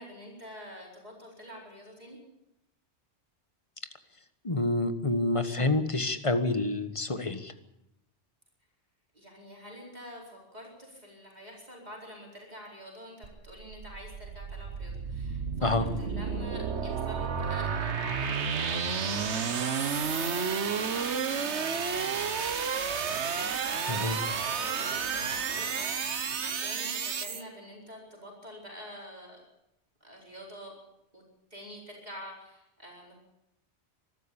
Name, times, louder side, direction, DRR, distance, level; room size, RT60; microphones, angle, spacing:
voice 1, 0.0-2.2 9.1-23.1 23.9-29.4 30.0-30.7 31.1-31.2 31.5-33.1, equal, 35° right, -2 dB, 4.8 m, -47 dB
voice 2, 4.4-7.5 15.6-15.8 23.9-24.2, left 2 dB, 30° left, 10 dB, 1.5 m, -28 dB
sound 1, 13.2-27.4, right 6 dB, 70° right, 1.5 m, -31 dB
24.5 x 13.0 x 8.7 m, 0.85 s
omnidirectional pair, 1.2 m